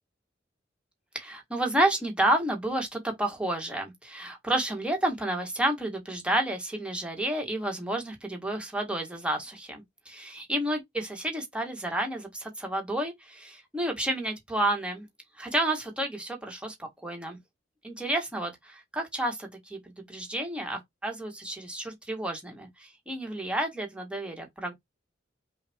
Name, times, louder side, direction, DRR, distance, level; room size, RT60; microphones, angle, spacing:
voice 1, 1.1-15.1 15.4-17.4 17.8-19.8 20.1-24.7, right 1 dB, 5° right, 1.4 m, -30 dB
5.5 x 2.4 x 3.6 m
head